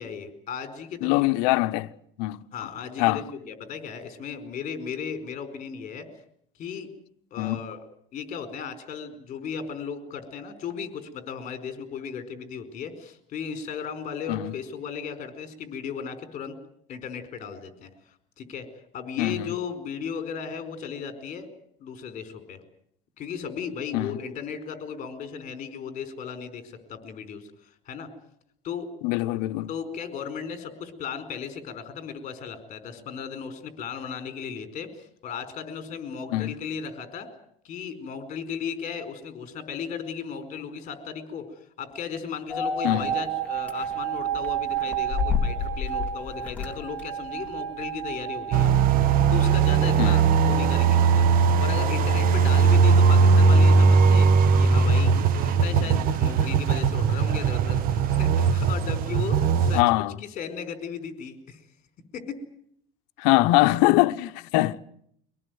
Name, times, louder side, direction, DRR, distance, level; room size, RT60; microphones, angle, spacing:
voice 1, 0.0-1.6 2.5-6.1 6.6-6.9 7.3-7.8 8.1-16.6 16.9-17.9 18.4-18.7 18.9-21.5 21.8-22.6 23.2-28.1 28.6-28.9 29.7-37.3 37.6-48.7 49.3-54.3 54.6-61.6 62.1-62.4, left 6 dB, 40° left, 4.6 m, -36 dB
voice 2, 1.0-1.9 2.2-2.4 3.0-3.2 7.4-7.6 14.3-14.5 19.2-19.6 23.9-24.1 29.0-29.7 36.3-36.6 42.8-43.1 50.0-50.2 59.7-60.1 63.2-64.8, left 19 dB, 85° left, 0.9 m, -23 dB
sound 1, 42.5-48.7, right 2 dB, 5° left, 2.8 m, -29 dB
sound 2, 48.5-59.8, right 5 dB, 45° right, 1.2 m, -19 dB
24.5 x 18.5 x 9.4 m
cardioid pair, 150°, 20 cm